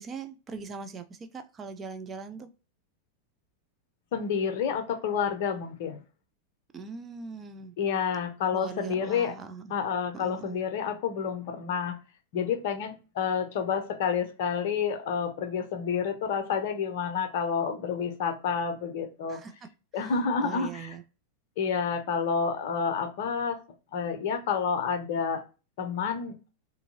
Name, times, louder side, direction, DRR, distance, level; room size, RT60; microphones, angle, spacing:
voice 1, 0.0-2.5 6.7-7.7 8.5-9.7 10.1-10.7 19.3-19.5 19.9-20.1 20.4-21.0, right 5 dB, 20° right, 7 dB, 0.4 m, -41 dB
voice 2, 4.1-6.0 7.8-9.3 9.7-12.0 12.3-19.4 19.9-20.9 21.6-23.6 23.9-25.4 25.8-26.4, left 6 dB, 50° left, 7 dB, 0.6 m, -29 dB
2.6 x 2.6 x 2.6 m, 0.32 s
figure-of-eight pair, 90°, 0 cm